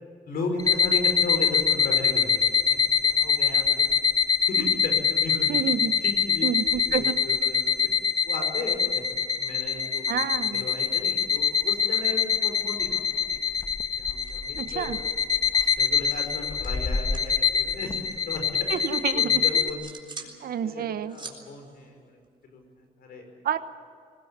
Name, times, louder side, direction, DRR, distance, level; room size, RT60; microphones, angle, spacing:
voice 1, 0.3-3.6 4.4-5.6 6.0-6.5 6.8-7.9 8.2-9.0 9.3-13.3 14.0-15.1 15.8-18.0 18.3-20.3 20.6-22.2 22.5-23.3, left 3 dB, 85° left, 4 dB, 5.4 m, -36 dB
sound 1, 0.6-19.7, left 7 dB, 25° left, 1.4 m, -24 dB
voice 2, 5.5-6.0 6.4-7.2 10.1-10.7 14.5-15.0 18.7-19.6 20.4-21.2 23.4-23.6, right 9 dB, 80° right, 11 dB, 1.0 m, -29 dB
sound 2, 13.1-13.3 13.6-14.8 15.1-17.4 17.6-19.0 19.4-20.4 20.7-22.8, right 4 dB, 30° right, 3.7 m, -46 dB
22.0 x 18.5 x 8.8 m, 2.2 s
cardioid pair, 95°, 15 cm